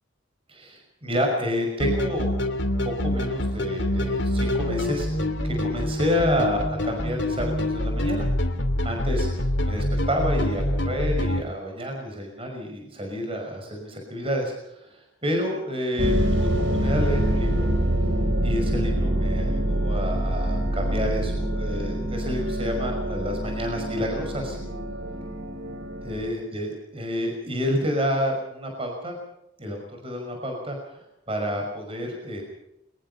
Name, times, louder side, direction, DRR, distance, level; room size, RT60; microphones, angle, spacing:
voice 1, 0.5-8.3 8.8-17.7 18.4-24.6 26.0-29.2 29.6-32.4, equal, 30° right, 3 dB, 5.7 m, -29 dB
sound 1, 1.8-11.4, left 1 dB, 65° left, 2.7 m, -26 dB
sound 2, 16.0-26.3, right 1 dB, 85° right, 3.2 m, -25 dB
23.5 x 21.5 x 5.6 m, 0.83 s
head